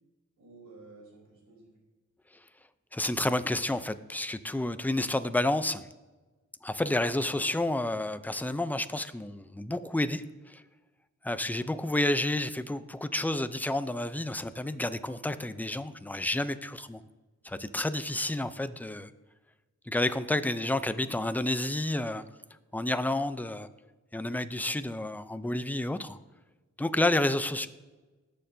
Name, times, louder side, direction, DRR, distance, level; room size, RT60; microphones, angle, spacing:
voice 1, 0.4-1.7 20.4-20.7 27.6-27.7, right 3 dB, 80° right, -8 dB, 3.7 m, -52 dB
voice 2, 2.9-5.9 6.6-10.6 11.2-17.0 17.4-19.1 19.9-22.2 22.7-23.7 24.1-26.2 26.8-27.7, left 1 dB, 5° left, 11 dB, 0.6 m, -30 dB
20.0 x 6.8 x 2.8 m, 1.2 s
cardioid pair, 85°, 30 cm